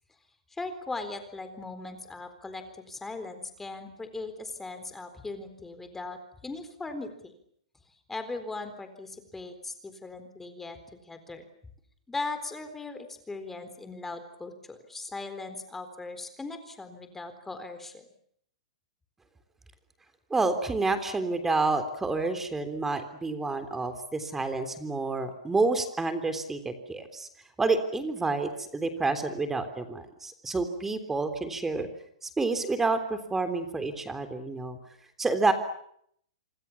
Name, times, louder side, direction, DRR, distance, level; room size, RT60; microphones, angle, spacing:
voice 1, 0.5-7.3 8.1-11.5 12.1-18.0, left 3 dB, 5° left, 9 dB, 4.0 m, -39 dB
voice 2, 20.3-27.3 27.6-31.9 32.2-34.8 35.2-35.5, right 3 dB, 10° right, 9 dB, 3.4 m, -29 dB
27.0 x 27.0 x 7.2 m, 0.69 s
hypercardioid pair, 150°, 4 cm